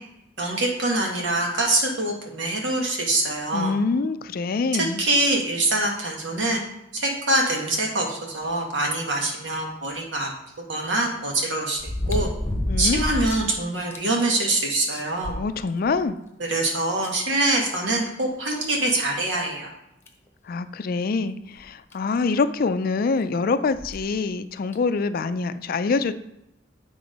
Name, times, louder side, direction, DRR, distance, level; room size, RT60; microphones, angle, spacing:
voice 1, 0.4-3.7 4.7-6.6 6.9-10.3 10.7-11.8 12.1-12.3 12.8-15.4 16.4-19.7, right 2 dB, 80° right, 0 dB, 1.6 m, -24 dB
voice 2, 3.5-5.0 12.7-13.0 15.4-16.2 20.5-26.1, left 4 dB, 55° left, 12 dB, 0.4 m, -25 dB
sound 1, 9.8-9.9 11.8-13.5 13.9-14.0 14.5-14.6 14.9-16.0 17.0-17.1 18.6-18.7 19.2-19.3 20.1-20.3 21.6-21.7 21.9-22.0 23.7-24.0 24.7-24.8, left 1 dB, 15° left, 1.0 m, -28 dB
7.8 x 3.7 x 5.2 m, 0.87 s
head